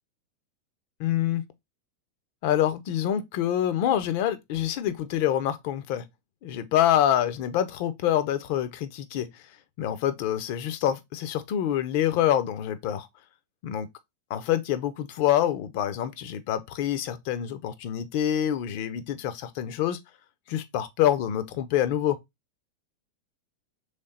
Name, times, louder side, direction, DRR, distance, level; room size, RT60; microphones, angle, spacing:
voice 1, 1.0-1.4 2.4-6.0 6.4-9.3 9.8-13.1 13.6-13.9 14.3-20.0 20.5-22.2, left 11 dB, 45° left, 0.6 m, -26 dB
3.4 x 3.3 x 4.0 m
figure-of-eight pair, 90°, 0 cm